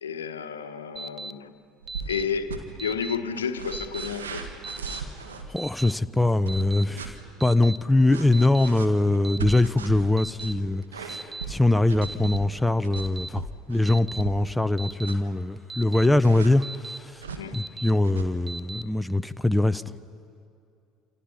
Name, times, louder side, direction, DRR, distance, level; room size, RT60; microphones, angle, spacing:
voice 1, 0.0-1.5 2.1-4.5 17.4-17.7, left 6 dB, 85° left, 9 dB, 1.1 m, -31 dB
Alarm, 1.0-1.3 1.9-2.2 2.8-3.2 3.7-4.1 4.6-5.0 5.6-5.9 6.5-6.8 7.4-7.8 8.3-8.7 9.2-9.6 10.2-10.5 11.1-11.4 12.0-12.4 12.9-13.3 13.9-14.2 14.8-15.1 15.7-16.1 16.6-17.0 17.5-17.9 18.5-18.8, right 3 dB, 30° right, 0.6 m, -37 dB
sound 1, 1.8-2.6 3.3-5.5 6.4-7.1 8.1-14.5 14.8-15.3 16.2-16.5 17.2-17.4 18.0-18.3, right 5 dB, 85° right, 1.9 m, -37 dB
voice 2, 5.5-7.1 7.4-17.2 17.5-19.8, left 2 dB, 5° left, 13 dB, 0.7 m, -23 dB
28.0 x 27.0 x 5.7 m, 2.5 s
figure-of-eight pair, 65°, 0 cm